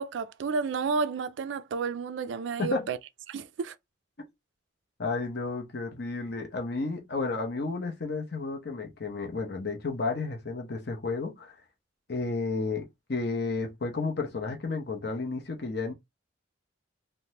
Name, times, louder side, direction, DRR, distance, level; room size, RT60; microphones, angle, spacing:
voice 1, 0.0-3.0 3.3-3.7, right 5 dB, 70° right, 0.3 m, -31 dB
voice 2, 5.0-11.5 12.1-15.9, left 3 dB, 55° left, 0.7 m, -32 dB
3.4 x 2.1 x 2.8 m
head